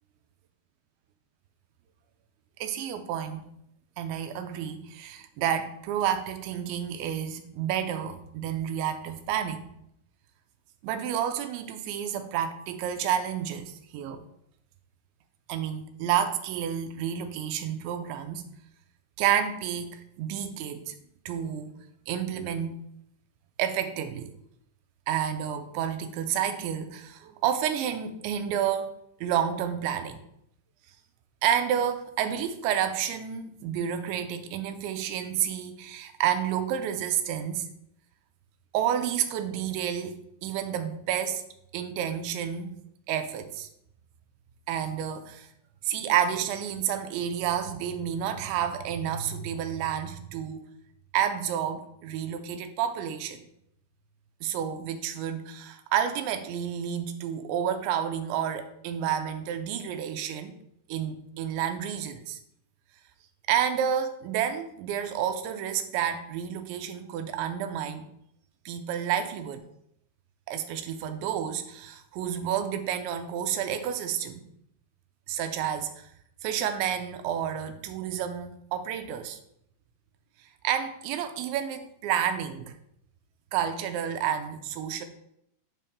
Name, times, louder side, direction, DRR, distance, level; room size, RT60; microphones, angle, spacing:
voice 1, 2.6-3.4 4.0-9.6 10.8-14.2 15.5-18.4 19.2-20.9 21.3-21.7 22.1-22.8 23.6-24.3 25.1-28.9 29.2-30.2 31.4-37.7 38.7-41.4 41.7-42.8 43.1-43.7 44.7-45.5 45.8-50.6 51.1-53.5 54.4-60.5 60.9-62.4 63.5-68.0 68.7-69.7 70.5-74.4 75.3-76.1 76.4-79.4 80.6-82.8 83.5-85.1, right 9 dB, 85° right, 8 dB, 3.0 m, -30 dB
11.5 x 5.4 x 2.2 m, 0.75 s
omnidirectional pair, 5.1 m